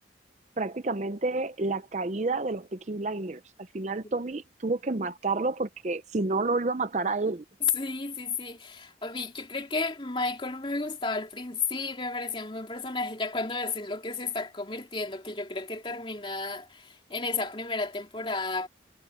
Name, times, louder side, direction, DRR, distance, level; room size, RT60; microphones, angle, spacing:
voice 1, 0.6-3.4 3.7-7.4, right 3 dB, 40° right, 0.6 m, -29 dB
voice 2, 7.7-18.7, left 3 dB, 25° left, 3.0 m, -33 dB
head